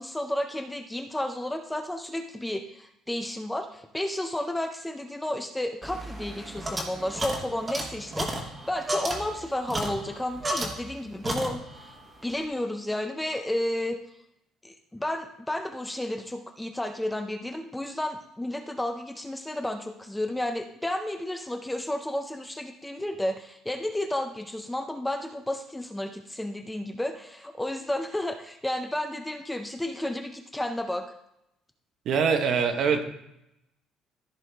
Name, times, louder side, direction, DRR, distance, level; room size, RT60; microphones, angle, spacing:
voice 1, 0.0-11.6 12.2-14.0 14.6-31.0, left 1 dB, 5° left, 5 dB, 0.5 m, -32 dB
sound 1, 5.8-11.0 11.2-11.9, right 1 dB, 15° right, 1.2 m, -33 dB
voice 2, 32.1-33.0, right 6 dB, 45° right, 6 dB, 1.0 m, -23 dB
14.0 x 4.8 x 3.4 m, 0.81 s
cardioid pair, 175°, 0 cm